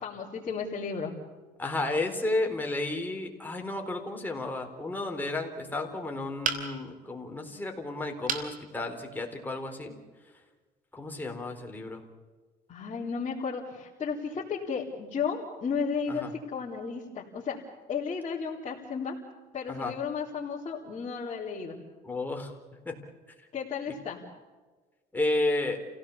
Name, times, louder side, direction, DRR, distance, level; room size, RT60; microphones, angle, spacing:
voice 1, 0.0-1.1 12.7-17.6 17.9-19.2 19.5-21.8 23.5-24.2, left 5 dB, 40° left, -6 dB, 4.0 m, -33 dB
voice 2, 1.6-9.9 10.9-12.0 16.1-16.3 19.7-19.9 22.0-22.5 22.8-23.0 25.1-25.8, left 2 dB, 10° left, 2 dB, 4.1 m, -32 dB
sound 1, 6.4-7.0 8.3-8.5 9.1-9.2 9.5-9.6, right 5 dB, 55° right, 3.2 m, -31 dB
29.0 x 17.0 x 7.2 m, 1.3 s
cardioid pair, 110°, 17 cm